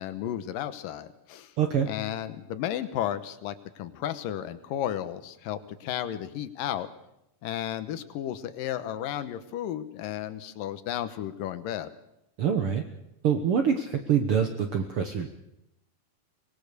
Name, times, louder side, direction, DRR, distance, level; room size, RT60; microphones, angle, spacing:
voice 1, 0.0-1.5 1.8-6.9 7.4-11.9, left 11 dB, 80° left, 12 dB, 2.7 m, -33 dB
voice 2, 1.6-1.9 12.4-12.8 13.2-15.3, right 7 dB, 65° right, 5 dB, 1.4 m, -25 dB
24.0 x 19.5 x 6.7 m, 0.84 s
omnidirectional pair, 4.0 m